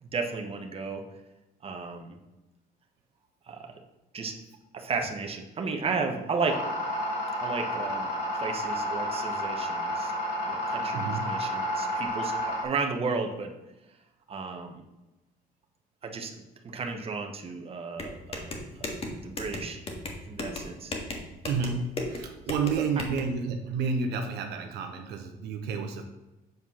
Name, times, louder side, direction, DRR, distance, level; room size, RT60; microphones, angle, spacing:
voice 1, 0.0-1.0 1.6-2.2 3.5-3.7 4.1-4.4 4.7-6.6 7.4-10.1 10.4-13.5 14.3-14.8 16.0-16.4 16.6-18.9 19.2-19.8 20.3-20.9 22.8-23.0, right 4 dB, 35° right, 3 dB, 1.2 m, -34 dB
sound 1, 6.4-12.6, equal, 80° left, 2.7 m, -31 dB
voice 2, 10.9-11.3 21.4-26.0, right 5 dB, 80° right, 5 dB, 1.0 m, -30 dB
sound 2, 18.0-23.2, left 2 dB, 35° left, 1.7 m, -36 dB
7.8 x 5.1 x 5.6 m, 1.0 s
cardioid pair, 110°, 17 cm